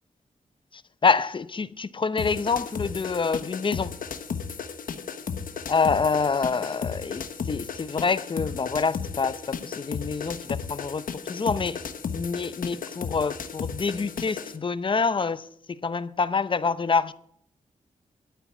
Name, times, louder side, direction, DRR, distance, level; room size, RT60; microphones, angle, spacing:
voice 1, 0.7-4.0 5.7-11.0 11.3-11.8 12.1-17.1, left 5 dB, 35° left, 0.6 m, -26 dB
sound 1, 2.2-14.6, left 6 dB, 85° left, 1.2 m, -34 dB
12.5 x 9.1 x 7.2 m
wide cardioid pair, 135°, 14 cm